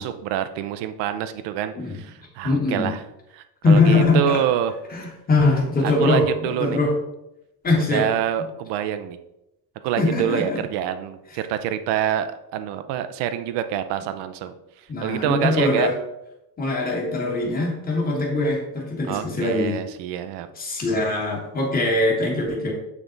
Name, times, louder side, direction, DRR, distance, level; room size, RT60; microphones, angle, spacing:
voice 1, 0.0-3.0 3.3-4.7 5.8-6.8 7.7-9.2 9.8-14.5 15.0-15.9 19.1-20.5, right 10 dB, 80° right, 10 dB, 0.7 m, -26 dB
voice 2, 2.4-2.9 3.6-4.4 4.9-6.9 7.6-8.1 10.0-10.6 14.9-15.9 16.6-19.8 20.5-22.7, left 3 dB, 20° left, -1 dB, 1.5 m, -22 dB
8.4 x 3.5 x 3.9 m, 0.87 s
cardioid pair, 165°, 42 cm